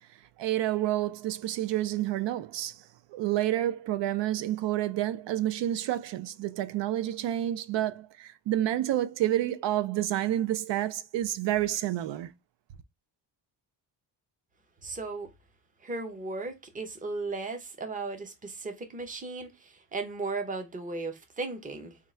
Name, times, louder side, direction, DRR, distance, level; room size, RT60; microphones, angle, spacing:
voice 1, 0.4-2.8 3.1-12.3, right 13 dB, 80° right, 0.5 m, -29 dB
voice 2, 14.8-15.3 15.8-22.0, right 3 dB, 20° right, 0.6 m, -36 dB
3.6 x 2.4 x 4.2 m
wide cardioid pair, 175°, 42 cm